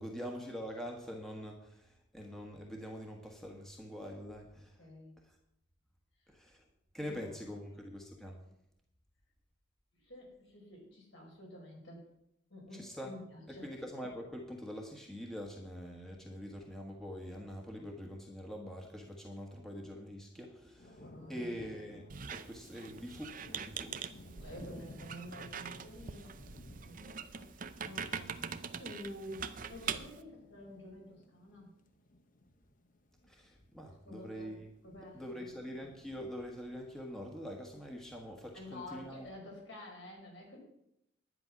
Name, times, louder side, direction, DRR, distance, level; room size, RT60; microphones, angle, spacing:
voice 1, 0.0-4.8 5.2-5.4 6.3-6.6 6.9-8.4 12.7-13.1 13.5-22.1 22.3-24.0 33.3-34.7 35.1-39.3, equal, ahead, 0 dB, 1.4 m, -44 dB
voice 2, 4.8-5.1 7.0-7.7 9.9-12.0 12.5-13.7 21.0-21.5 24.2-26.3 26.7-31.7 34.0-34.6 34.8-35.5 38.5-40.6, left 1 dB, 70° left, -1 dB, 5.0 m, -50 dB
sound 1, 20.8-39.3, left 1 dB, 40° left, 1.0 m, -57 dB
Squeak, 22.1-30.2, right 6 dB, 40° right, 0.6 m, -43 dB
11.0 x 9.6 x 5.9 m, 0.80 s
head